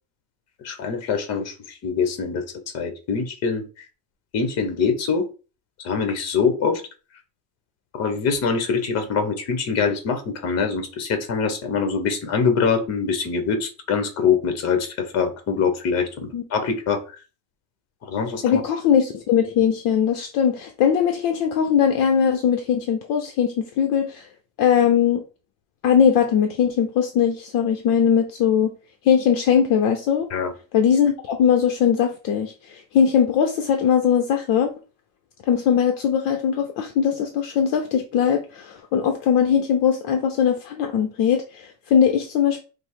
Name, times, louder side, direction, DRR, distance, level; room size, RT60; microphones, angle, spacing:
voice 1, 0.6-2.4 2.7-3.8 4.3-5.3 5.8-6.8 7.9-17.0 18.0-18.6 30.3-30.5, left 5 dB, 40° left, 7 dB, 1.0 m, -24 dB
voice 2, 18.4-24.3 24.6-25.2 25.8-28.7 29.0-30.3 30.7-34.7 35.5-42.6, left 8 dB, 60° left, 4 dB, 0.7 m, -20 dB
5.2 x 2.1 x 4.5 m, 0.34 s
cardioid pair, 170°, 38 cm